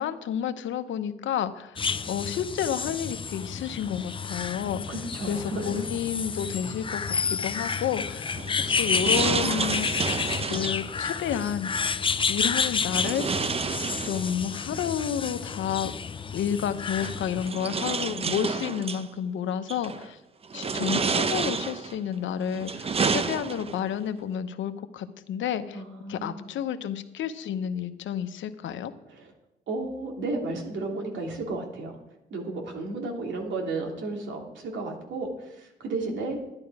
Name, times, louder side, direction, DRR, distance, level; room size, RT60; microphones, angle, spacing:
voice 1, 0.0-1.8 2.1-4.8 5.3-8.4 8.7-11.7 12.3-13.3 14.0-15.9 16.3-20.2 20.5-25.8 26.1-28.9, left 9 dB, 75° left, 10 dB, 0.9 m, -30 dB
sound 1, 1.8-17.5, left 5 dB, 25° left, 0.6 m, -30 dB
voice 2, 4.6-5.9 25.7-26.5 29.1-29.3 29.7-32.0 32.3-36.4, right 2 dB, 70° right, 1 dB, 2.9 m, -33 dB
sound 2, 8.3-10.9 12.9-14.5 15.9-16.0 17.0-19.1 19.7-20.1 20.5-22.0 22.5-23.9, right 5 dB, 30° right, 0.7 m, -29 dB
11.5 x 10.5 x 4.8 m, 0.90 s
cardioid pair, 90°, 20 cm